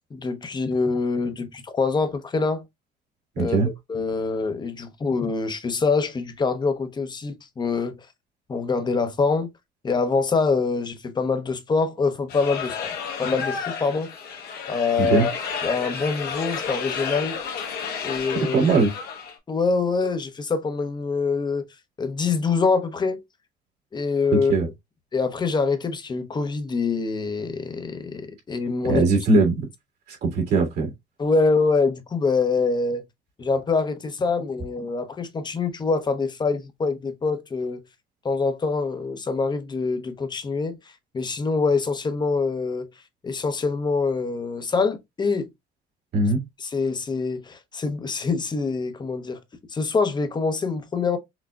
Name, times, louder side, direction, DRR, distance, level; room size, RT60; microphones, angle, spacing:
voice 1, 0.1-2.6 3.4-3.6 3.9-8.0 8.5-9.5 9.8-12.9 13.2-14.1 14.7-15.3 15.6-17.3 18.0-18.6 19.5-21.6 22.0-23.2 23.9-24.5 25.1-29.1 31.2-33.0 33.4-37.8 38.2-40.8 41.1-42.9 43.2-45.5 46.6-49.4 49.7-51.2, left 4 dB, 25° left, 0.8 m, -25 dB
voice 2, 3.4-3.7 15.0-15.3 18.5-18.9 24.3-24.7 28.9-29.6 30.2-30.9 46.1-46.4, right 3 dB, 75° right, 2.0 m, -20 dB
sound 1, 12.3-19.3, left 6 dB, 70° left, 1.2 m, -31 dB
5.9 x 2.3 x 2.3 m
cardioid pair, 110°, 17 cm